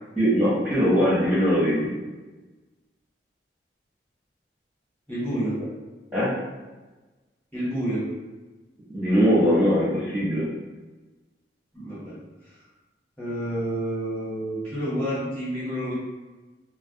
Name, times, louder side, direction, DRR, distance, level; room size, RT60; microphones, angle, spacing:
voice 1, 0.2-1.9 6.1-6.3 8.9-10.4, equal, 10° right, -12 dB, 0.6 m, -21 dB
voice 2, 5.1-5.6 7.5-8.1 11.7-12.2 13.2-15.9, right 1 dB, 10° left, -10 dB, 1.0 m, -29 dB
2.3 x 2.0 x 2.6 m, 1.2 s
head